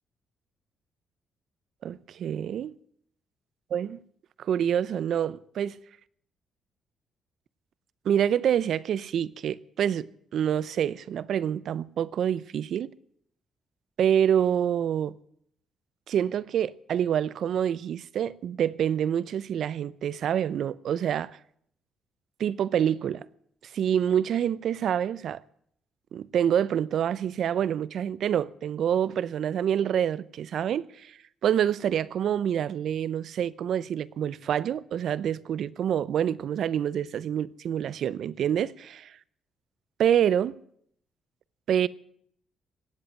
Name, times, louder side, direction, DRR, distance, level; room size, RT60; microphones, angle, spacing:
voice 1, 1.8-2.7 3.7-4.0 4.4-5.8 8.0-12.9 14.0-15.2 16.1-21.4 22.4-23.2 23.7-25.4 26.1-31.2 31.4-38.9 40.0-40.6 41.7-41.9, right 9 dB, 65° right, 0.6 m, -27 dB
18.0 x 7.9 x 9.6 m
cardioid pair, 90°, 0 cm